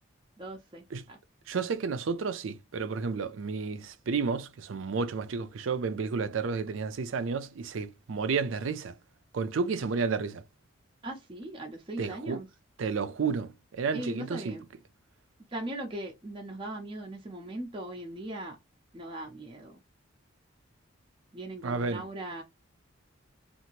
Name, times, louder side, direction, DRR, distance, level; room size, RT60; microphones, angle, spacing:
voice 1, 0.4-1.2 11.0-12.5 13.9-14.6 15.5-18.6 18.9-19.7 21.3-22.4, right 1 dB, 25° right, 0.5 m, -39 dB
voice 2, 1.5-8.9 9.3-10.4 12.0-12.4 12.8-14.6 21.6-22.1, right 5 dB, 75° right, 0.4 m, -31 dB
2.8 x 2.5 x 2.9 m
head